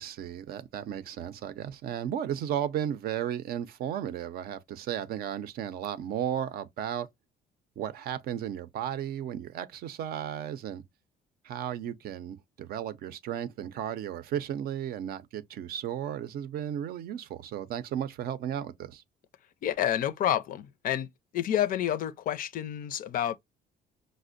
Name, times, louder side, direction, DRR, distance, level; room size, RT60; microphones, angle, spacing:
voice 1, 0.0-7.1 7.8-10.8 11.4-19.0, right 10 dB, 65° right, 0.5 m, -34 dB
voice 2, 19.6-21.1 21.3-23.4, left 11 dB, 55° left, 0.4 m, -29 dB
5.0 x 2.0 x 2.4 m
cardioid pair, 110°, 17 cm